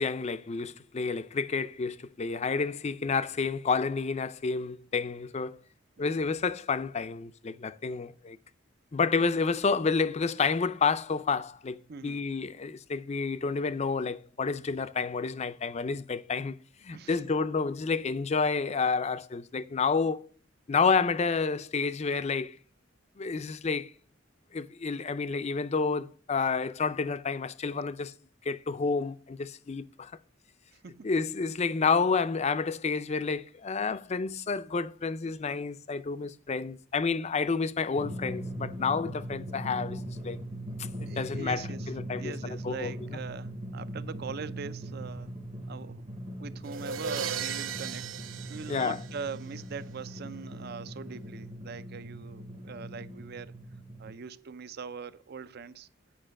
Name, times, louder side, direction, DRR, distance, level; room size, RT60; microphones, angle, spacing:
voice 1, 0.0-5.6 6.0-8.4 8.9-20.3 20.7-22.6 23.2-23.9 24.5-28.1 28.4-30.1 31.0-40.4 40.8-42.9 48.7-49.0, left 4 dB, 35° left, 0.4 m, -30 dB
voice 2, 11.9-12.3 16.9-17.2 30.7-31.1 41.1-45.3 45.7-48.1 48.5-53.5 54.0-55.9, right 5 dB, 50° right, 0.5 m, -42 dB
Drum, 38.0-54.1, right 1 dB, 30° right, 0.9 m, -40 dB
sound 1, 46.7-49.6, right 7 dB, 80° right, 0.8 m, -36 dB
8.9 x 5.4 x 6.2 m
head